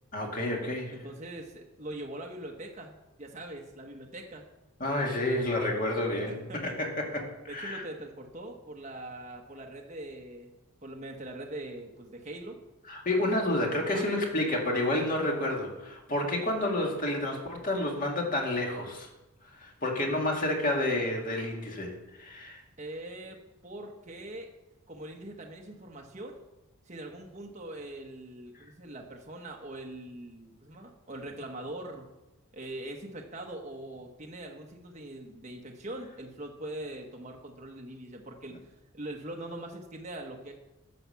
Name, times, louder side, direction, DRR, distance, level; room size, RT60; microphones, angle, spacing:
voice 1, 0.1-1.0 4.8-7.8 12.9-19.1 19.4-22.6, left 1 dB, 40° left, 0 dB, 2.1 m, -30 dB
voice 2, 0.9-4.5 6.3-6.8 7.5-10.5 10.8-12.6 13.8-14.1 22.8-24.5 24.9-26.4 26.8-32.1 32.5-38.6 38.9-40.5, right 1 dB, 35° right, 1 dB, 1.0 m, -42 dB
10.5 x 5.7 x 7.0 m, 1.0 s
head